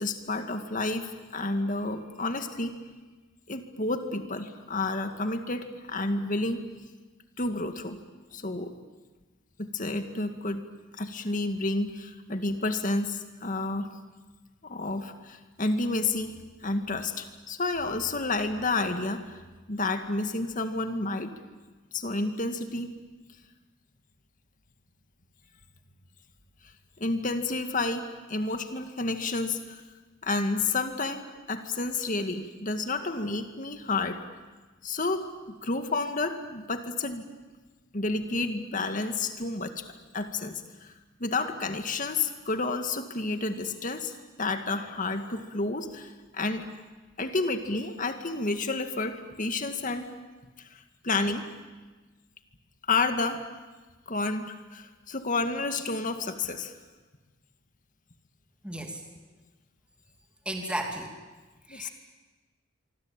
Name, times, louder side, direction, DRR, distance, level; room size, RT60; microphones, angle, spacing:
voice 1, 0.0-2.8 3.5-6.6 7.4-8.0 8.3-8.7 9.6-10.6 11.0-13.9 14.6-19.4 19.7-21.3 21.9-22.9 27.0-29.8 30.2-34.2 34.8-37.2 37.9-39.9 40.1-40.9 41.2-46.7 47.2-50.1 50.6-51.5 52.9-53.5 54.1-56.7 61.7-61.9, left 3 dB, 40° left, 7 dB, 2.1 m, -30 dB
voice 2, 58.6-59.0 60.4-61.1 61.7-61.9, right 1 dB, 5° right, 2 dB, 2.8 m, -33 dB
25.5 x 24.5 x 9.0 m, 1.3 s
head